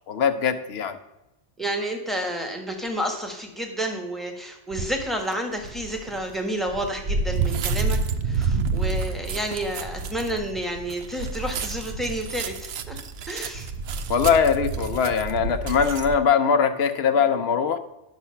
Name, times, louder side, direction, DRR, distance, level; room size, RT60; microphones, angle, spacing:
voice 1, 0.1-1.0 14.1-17.8, left 6 dB, 65° left, 8 dB, 1.0 m, -21 dB
voice 2, 1.6-13.0 13.3-13.7, right 1 dB, ahead, 3 dB, 1.4 m, -30 dB
sound 1, 4.7-5.0 5.6-16.2, right 4 dB, 65° right, 0.9 m, -29 dB
10.5 x 6.0 x 5.7 m, 0.93 s
omnidirectional pair, 1.2 m